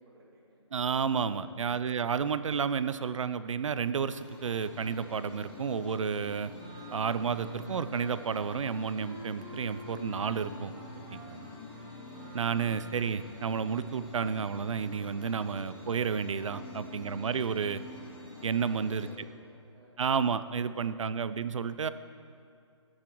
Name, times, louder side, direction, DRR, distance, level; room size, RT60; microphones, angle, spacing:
voice 1, 0.0-0.6 1.2-1.5 11.1-11.5 18.6-20.0 20.5-21.1, right 2 dB, 50° right, -4 dB, 2.6 m, -57 dB
voice 2, 0.7-6.5 6.9-10.7 11.1-11.5 12.3-17.8 18.4-19.1 20.0-21.9, right 6 dB, 80° right, 14 dB, 0.5 m, -31 dB
sound 1, 4.1-19.1, left 2 dB, 45° left, 2.4 m, -47 dB
Wind instrument woodwind instrument, 6.6-13.2, equal, 10° right, 0.4 m, -49 dB
14.5 x 8.6 x 3.0 m, 2.4 s
hypercardioid pair, 170°, 16 cm